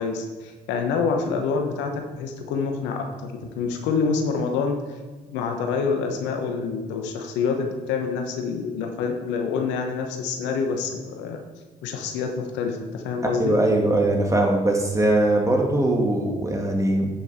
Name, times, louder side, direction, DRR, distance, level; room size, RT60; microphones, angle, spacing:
voice 1, 0.0-1.9 2.2-4.8 5.3-11.4 11.8-13.5, left 5 dB, 80° left, 3 dB, 1.1 m, -27 dB
voice 2, 13.4-17.1, right 1 dB, 15° right, 1 dB, 2.3 m, -21 dB
10.0 x 5.8 x 4.3 m, 1.3 s
hypercardioid pair, 50°, 18 cm